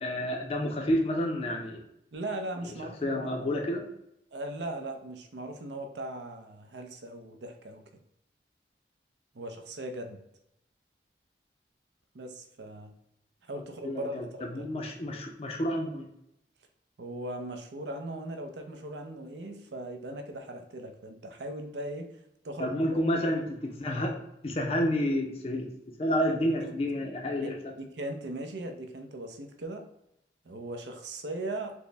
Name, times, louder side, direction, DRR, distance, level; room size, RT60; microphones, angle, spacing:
voice 1, 0.0-1.8 3.0-3.8 13.8-14.2 14.5-16.1 22.6-24.2 24.4-25.7 26.0-27.7, equal, 35° left, 1 dB, 0.4 m, -29 dB
voice 2, 2.1-3.5 4.3-7.8 9.3-10.2 12.1-12.9 13.4-14.6 17.0-22.1 22.4-23.0 26.6-26.7 27.4-29.8 30.4-31.7, right 1 dB, 80° right, 5 dB, 0.6 m, -39 dB
4.4 x 2.1 x 3.3 m, 0.78 s
head